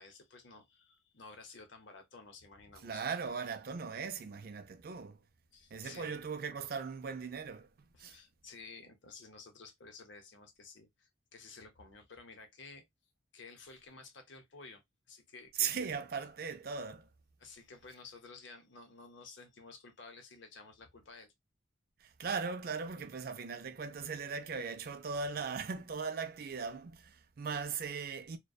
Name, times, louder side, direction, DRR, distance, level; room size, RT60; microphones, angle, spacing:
voice 1, 0.0-3.0 5.5-6.2 7.9-12.8 13.3-14.8 15.1-15.9 17.4-21.3, left 4 dB, 65° left, 0.7 m, -53 dB
voice 2, 2.8-5.2 5.7-7.7 8.0-8.2 15.6-17.1 22.0-28.4, right 5 dB, 45° right, 0.4 m, -38 dB
2.6 x 2.1 x 2.3 m
head